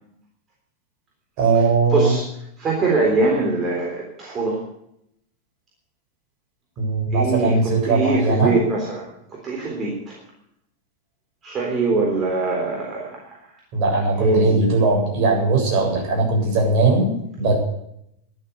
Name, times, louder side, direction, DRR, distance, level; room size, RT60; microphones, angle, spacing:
voice 1, 1.4-2.1 6.8-8.5 13.7-17.5, right 3 dB, 40° right, 0 dB, 7.5 m, -19 dB
voice 2, 1.9-2.2 2.6-4.6 7.1-10.2 11.4-13.6 14.2-14.6, right 3 dB, 25° right, -2 dB, 3.7 m, -23 dB
12.5 x 11.5 x 8.2 m, 0.76 s
figure-of-eight pair, 90°, 0 cm